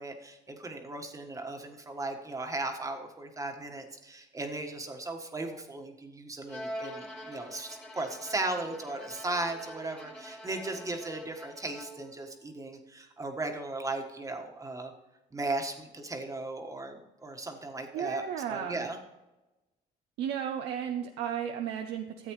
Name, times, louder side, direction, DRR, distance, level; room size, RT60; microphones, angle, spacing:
voice 1, 0.0-14.9 15.3-18.2 18.5-19.0, right 2 dB, 20° right, 4 dB, 1.5 m, -36 dB
Bowed string instrument, 6.5-12.2, equal, 5° left, 1.6 m, -44 dB
voice 2, 17.9-18.9 20.2-22.3, right 9 dB, 80° right, 5 dB, 0.8 m, -34 dB
14.0 x 8.1 x 3.2 m, 1.0 s
cardioid pair, 110°, 17 cm